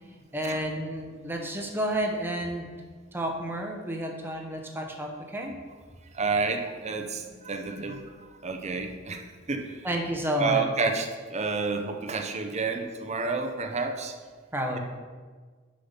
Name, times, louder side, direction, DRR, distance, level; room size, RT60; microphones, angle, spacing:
voice 1, 0.3-2.7 3.1-5.5 9.8-10.6 14.5-14.8, right 1 dB, 10° right, 2 dB, 1.0 m, -30 dB
voice 2, 6.1-9.8 10.3-14.1, right 4 dB, 35° right, 3 dB, 0.7 m, -30 dB
6.8 x 5.5 x 5.7 m, 1.5 s
head